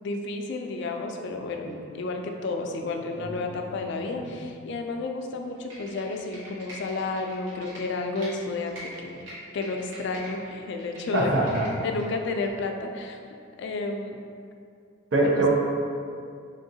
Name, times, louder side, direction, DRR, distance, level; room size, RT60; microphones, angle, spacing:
voice 1, 0.0-1.7 1.9-9.3 9.5-11.3 11.8-13.2 13.6-14.2 15.3-15.4, left 3 dB, 60° left, 3 dB, 0.3 m, -31 dB
sound 1, 1.3-4.5, right 1 dB, 20° right, 0.5 m, -43 dB
Computer keyboard, 5.5-8.3 8.6-10.3 10.6-12.0 12.4-12.5, equal, 85° right, 1.3 m, -44 dB
voice 2, 11.1-11.7 15.1-15.5, right 2 dB, 70° right, -2 dB, 0.7 m, -22 dB
3.7 x 3.5 x 2.7 m, 2.3 s
head